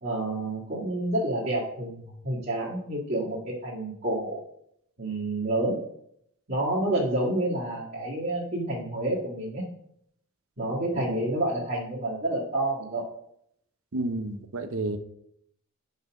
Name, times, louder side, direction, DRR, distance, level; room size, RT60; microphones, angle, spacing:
voice 1, 0.0-4.4 5.0-5.8 6.5-9.6 10.6-13.0, right 1 dB, 45° right, -9 dB, 2.0 m, -29 dB
voice 2, 13.9-15.0, right 2 dB, 65° right, 10 dB, 0.8 m, -30 dB
5.7 x 5.6 x 6.1 m, 0.72 s
head